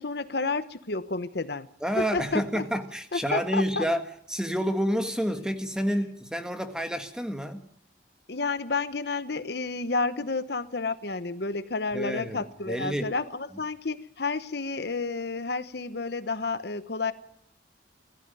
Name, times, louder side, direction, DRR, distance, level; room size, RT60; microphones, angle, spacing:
voice 1, 0.0-1.7 2.0-2.6 3.1-3.9 8.3-17.1, left 3 dB, 55° left, 0.9 m, -30 dB
voice 2, 1.8-4.0 4.3-7.6 11.9-13.1, equal, 5° right, 1.7 m, -29 dB
21.5 x 14.5 x 9.2 m
head